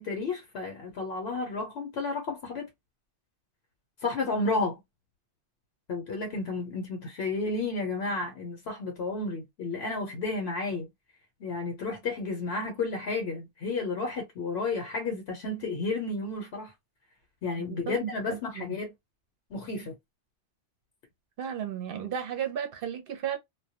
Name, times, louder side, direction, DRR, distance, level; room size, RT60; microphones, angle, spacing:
voice 1, 0.0-2.7 4.0-4.8 5.9-10.9 11.4-16.7 17.4-18.9 19.5-19.9, left 3 dB, 70° left, 0.9 m, -32 dB
voice 2, 17.6-18.7 21.4-23.4, right 9 dB, 60° right, 0.7 m, -34 dB
2.2 x 2.1 x 2.7 m
omnidirectional pair, 1.2 m